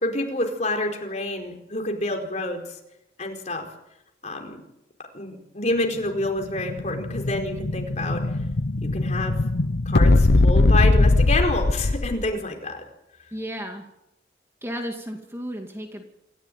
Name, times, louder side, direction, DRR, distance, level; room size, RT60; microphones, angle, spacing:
voice 1, 0.0-2.7 3.2-3.6 4.2-4.6 5.1-8.2 8.8-9.3 9.8-12.8, left 2 dB, 40° left, 3 dB, 4.6 m, -28 dB
Explosion, 6.2-12.3, left 2 dB, 70° left, 0.8 m, -20 dB
voice 2, 13.3-13.9 14.6-16.1, equal, 15° right, 3 dB, 2.4 m, -33 dB
27.5 x 15.0 x 9.3 m, 0.86 s
head